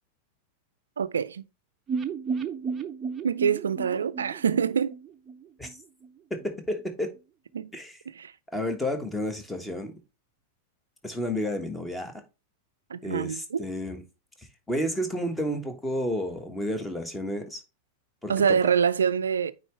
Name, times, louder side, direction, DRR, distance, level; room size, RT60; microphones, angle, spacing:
voice 1, 1.0-1.4 3.2-4.9 7.5-7.7 8.1-8.3 12.9-13.7 18.3-19.5, right 7 dB, 70° right, 0.4 m, -25 dB
sound 1, 1.9-5.8 6.0-6.1 6.4-6.5, right 5 dB, 25° right, 0.7 m, -33 dB
voice 2, 6.3-7.1 7.7-8.0 8.5-9.9 11.0-12.2 13.0-14.0 14.7-17.6 18.2-18.7, equal, 10° left, 1.4 m, -31 dB
9.1 x 3.9 x 3.2 m
figure-of-eight pair, 90°, 0 cm